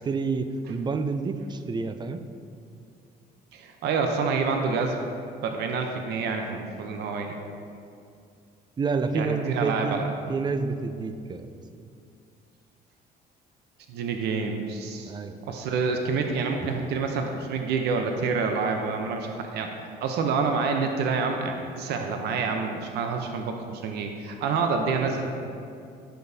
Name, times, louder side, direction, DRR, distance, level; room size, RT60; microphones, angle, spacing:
voice 1, 0.0-2.2 8.8-10.0 10.3-11.5 11.8-11.9 15.1-15.4, right 4 dB, 25° right, 9 dB, 0.4 m, -28 dB
voice 2, 3.5-5.0 5.4-7.3 9.1-10.1 13.9-15.1 15.4-19.7 20.0-25.3, right 4 dB, 75° right, 4 dB, 0.7 m, -27 dB
10.0 x 6.9 x 2.8 m, 2.4 s
cardioid pair, 110°, 17 cm